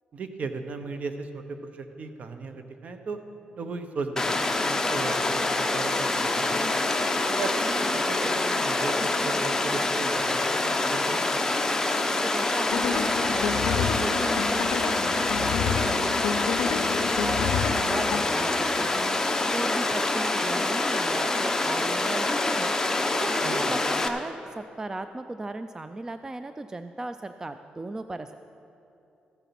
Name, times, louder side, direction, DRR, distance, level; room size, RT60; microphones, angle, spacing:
voice 1, 0.1-3.2 3.5-6.8 7.3-11.4 23.4-23.8, right 4 dB, 55° right, 7 dB, 0.9 m, -36 dB
Water, 4.2-24.1, left 2 dB, 15° left, 0.8 m, -26 dB
voice 2, 12.2-19.2 19.5-28.4, right 2 dB, 20° right, 9 dB, 0.3 m, -36 dB
sound 1, 12.7-18.2, left 8 dB, 85° left, 0.4 m, -30 dB
14.5 x 6.9 x 5.9 m, 2.9 s
cardioid pair, 100°, 3 cm